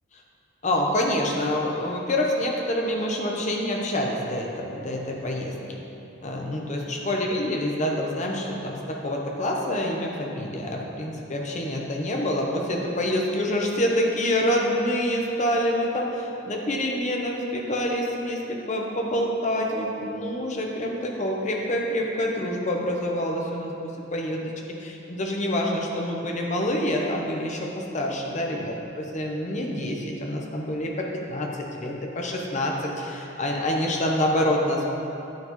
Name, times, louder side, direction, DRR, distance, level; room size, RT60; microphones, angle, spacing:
voice 1, 0.6-5.8 6.2-23.7 24.1-24.5 24.8-28.6 29.1-34.8, left 1 dB, 35° left, 0 dB, 0.9 m, -27 dB
9.4 x 7.7 x 3.1 m, 2.9 s
head